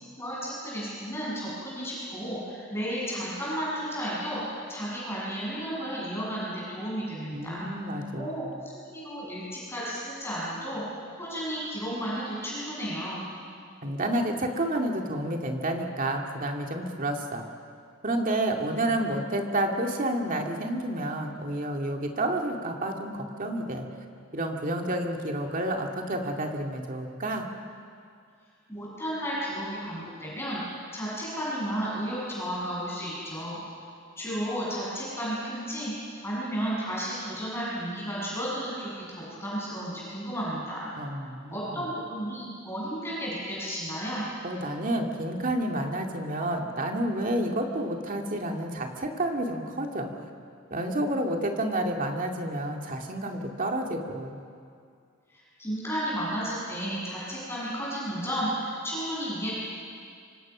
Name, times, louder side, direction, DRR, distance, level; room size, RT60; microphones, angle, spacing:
voice 1, 0.2-7.7 8.2-8.5 8.9-10.8 11.2-13.2 28.7-33.6 34.2-35.9 36.2-40.9 41.5-44.2 55.6-58.5 58.8-59.5, equal, 15° left, -7 dB, 7.8 m, -33 dB
voice 2, 7.3-8.5 13.8-17.4 18.0-23.9 24.3-27.5 41.0-41.9 44.4-50.1 50.7-54.4, right 1 dB, 40° right, 2 dB, 2.3 m, -30 dB
26.0 x 25.0 x 6.1 m, 2.3 s
head